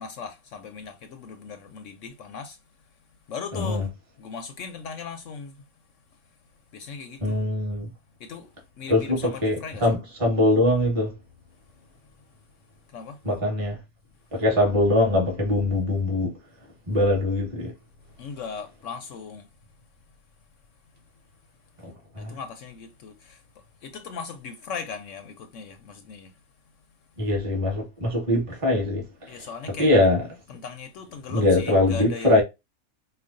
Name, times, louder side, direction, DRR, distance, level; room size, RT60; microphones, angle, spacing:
voice 1, 0.0-2.6 3.3-3.9 4.2-5.6 6.7-7.5 8.2-8.5 8.8-9.9 12.9-13.2 18.2-19.5 22.2-23.4 23.8-26.3 29.3-29.9 30.5-32.4, left 6 dB, 65° left, 0.8 m, -38 dB
voice 2, 3.5-3.9 7.2-7.9 8.9-11.1 13.2-13.8 14.3-16.3 16.9-17.7 21.8-22.4 27.2-29.4 29.8-30.3 31.3-32.4, left 1 dB, 25° right, 1.4 m, -22 dB
4.9 x 2.3 x 2.5 m
omnidirectional pair, 1.5 m